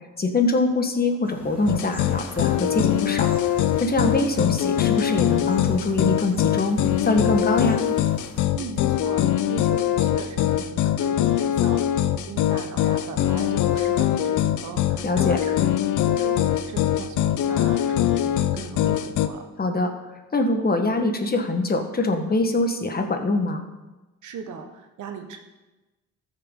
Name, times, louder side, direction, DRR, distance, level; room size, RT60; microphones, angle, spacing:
voice 1, 0.2-3.4 3.8-7.8 15.0-15.4 19.6-19.9 20.3-23.6, left 2 dB, 30° left, 5 dB, 1.4 m, -23 dB
sound 1, 1.2-8.5, equal, 5° right, 3.8 m, -44 dB
sound 2, 1.7-19.3, left 11 dB, 75° left, 0.6 m, -22 dB
voice 2, 8.5-19.5 24.2-25.4, right 6 dB, 75° right, 5 dB, 1.3 m, -38 dB
14.0 x 6.6 x 3.8 m, 1.1 s
cardioid pair, 90°, 30 cm